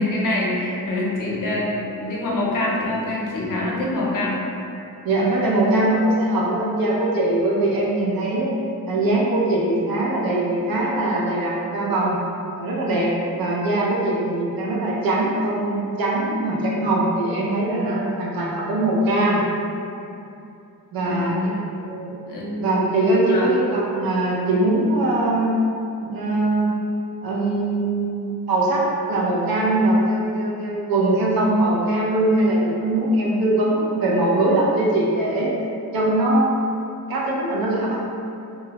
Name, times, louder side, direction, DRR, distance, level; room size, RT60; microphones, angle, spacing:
voice 1, 0.0-4.4 21.0-21.6 22.3-23.6, left 1 dB, 60° left, -4 dB, 0.5 m, -25 dB
voice 2, 5.0-8.5 8.9-12.2 12.6-19.4 20.9-21.4 21.7-22.2 22.6-25.6 26.0-26.7 27.2-35.5 35.9-36.5 37.1-38.0, right 1 dB, 75° right, -4 dB, 0.5 m, -21 dB
2.4 x 2.0 x 2.8 m, 2.7 s
wide cardioid pair, 165°, 36 cm